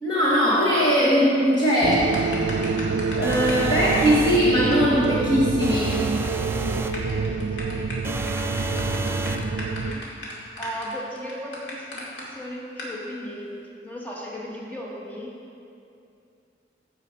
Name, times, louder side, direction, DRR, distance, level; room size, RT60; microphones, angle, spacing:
voice 1, 0.0-2.1 3.1-6.0, equal, 25° left, -7 dB, 1.1 m, -20 dB
sound 1, 1.8-10.0, right 4 dB, 80° right, 0.4 m, -27 dB
sound 2, 1.9-3.6 3.9-4.1 4.4-4.5 4.7-4.8 5.0-5.1 5.4-5.9 6.2-6.4 6.7-12.2 12.8-12.9, left 1 dB, 85° left, 2.1 m, -37 dB
sound 3, 3.2-4.5 5.6-7.0 8.0-9.5, right 2 dB, 15° right, 0.4 m, -30 dB
voice 2, 6.7-8.7 8.9-10.2 10.6-13.5 13.8-15.3, equal, 10° left, -4 dB, 1.4 m, -38 dB
15.0 x 5.0 x 5.1 m, 2.6 s
head